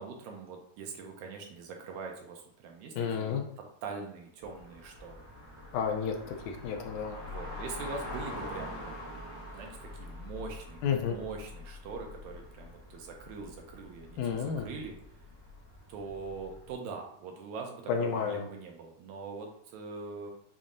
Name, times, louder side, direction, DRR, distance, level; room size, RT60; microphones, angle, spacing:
voice 1, 0.0-5.3 7.2-8.9 9.5-14.9 15.9-20.3, right 4 dB, 80° right, 2 dB, 2.0 m, -43 dB
voice 2, 3.0-3.4 5.7-7.2 10.8-11.2 14.2-14.7 17.9-18.4, left 6 dB, 80° left, 3 dB, 2.0 m, -31 dB
sound 1, 4.4-16.7, left 1 dB, 40° left, 2.1 m, -45 dB
7.2 x 2.7 x 2.5 m, 0.67 s
omnidirectional pair, 3.6 m